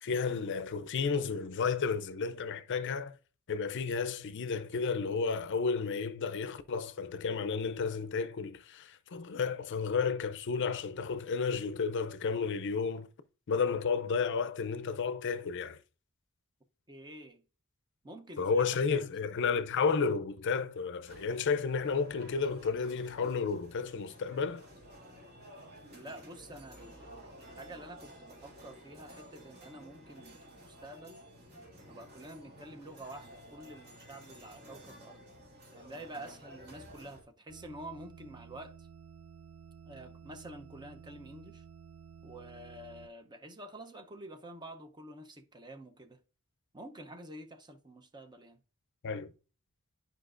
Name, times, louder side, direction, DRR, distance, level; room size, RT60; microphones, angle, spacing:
voice 1, 0.0-3.2 3.5-13.1 13.5-15.8 18.4-24.7 49.0-49.3, left 5 dB, 55° left, 0.5 m, -32 dB
voice 2, 16.9-17.4 18.0-19.0 25.9-31.2 31.9-35.2 35.7-38.9 39.9-41.6 42.2-46.2 46.7-48.6, right 1 dB, 20° right, 0.6 m, -48 dB
sound 1, 21.0-37.2, equal, 50° right, 2.5 m, -53 dB
sound 2, 37.5-43.1, right 7 dB, 85° right, 0.4 m, -53 dB
10.0 x 5.0 x 2.5 m
head